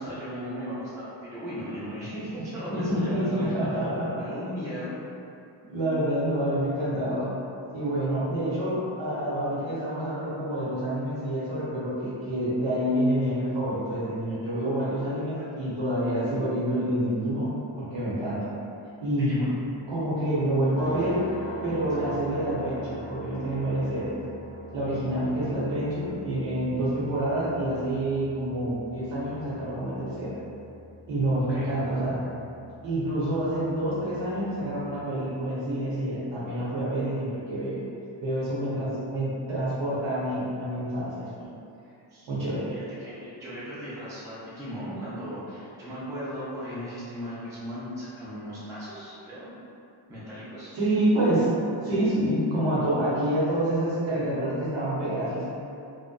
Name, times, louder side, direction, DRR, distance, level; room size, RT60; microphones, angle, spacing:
voice 1, 0.0-3.6 4.1-4.9 15.4-15.5 19.2-19.5 22.0-22.1 31.5-31.7 42.1-42.3 42.7-49.5 50.1-50.8, equal, 10° right, -10 dB, 0.3 m, -37 dB
voice 2, 2.7-4.3 5.7-7.3 7.7-18.5 19.0-19.4 19.9-21.2 21.6-24.2 24.7-30.4 31.1-32.2 32.8-37.8 38.2-41.5 42.2-42.7 50.7-51.5 51.8-55.5, right 1 dB, 70° right, -8 dB, 0.9 m, -27 dB
sound 1, 20.8-35.0, right 1 dB, 90° left, 0.7 m, -42 dB
2.7 x 2.1 x 2.2 m, 2.6 s
wide cardioid pair, 175°, 46 cm